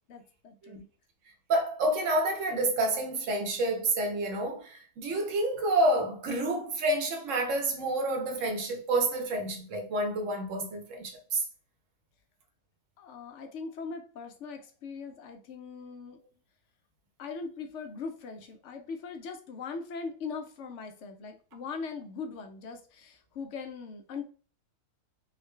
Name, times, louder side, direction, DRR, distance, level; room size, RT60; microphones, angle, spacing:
voice 1, 0.1-0.9 13.0-16.2 17.2-24.2, left 5 dB, 65° left, 0.7 m, -40 dB
voice 2, 1.5-11.4, right 1 dB, 60° right, 1.0 m, -29 dB
3.8 x 2.1 x 3.1 m
omnidirectional pair, 1.6 m